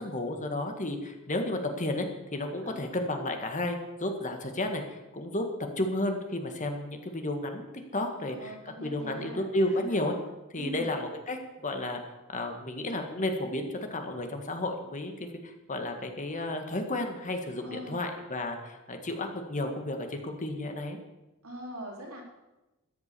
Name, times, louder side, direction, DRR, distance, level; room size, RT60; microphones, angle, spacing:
voice 1, 0.0-2.1 2.3-7.7 7.9-10.1 10.5-12.0 12.3-21.0, left 1 dB, 35° left, 4 dB, 1.7 m, -32 dB
voice 2, 8.1-10.0 10.6-10.9 17.6-18.0 21.4-22.2, right 1 dB, 70° right, -1 dB, 4.0 m, -42 dB
13.0 x 11.0 x 6.9 m, 1.0 s
head